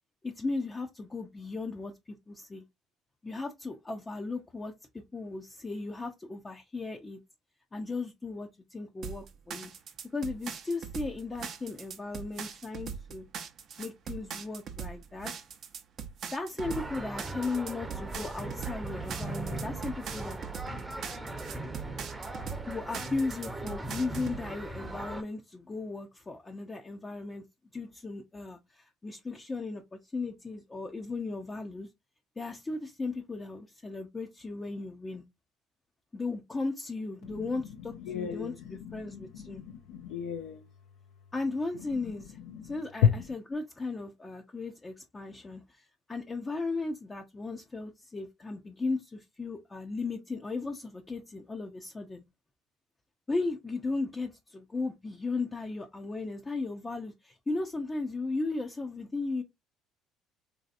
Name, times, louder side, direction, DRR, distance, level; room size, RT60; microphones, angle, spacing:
voice 1, 0.2-1.9 2.3-2.6 3.2-4.7 5.1-7.2 7.7-9.7 10.1-13.2 13.8-15.4 16.3-20.4 22.6-27.4 27.7-31.9 32.4-35.2 36.1-38.5 38.9-39.6 41.3-42.4 42.6-52.2 53.3-59.4, left 3 dB, 25° left, 0.5 m, -36 dB
sound 1, 9.0-24.4, right 7 dB, 55° right, 0.6 m, -41 dB
sound 2, 16.6-25.2, right 2 dB, 15° right, 0.7 m, -39 dB
voice 2, 37.2-40.8 41.7-43.3, left 8 dB, 75° left, 0.5 m, -33 dB
3.1 x 2.7 x 2.5 m
hypercardioid pair, 60°, 0 cm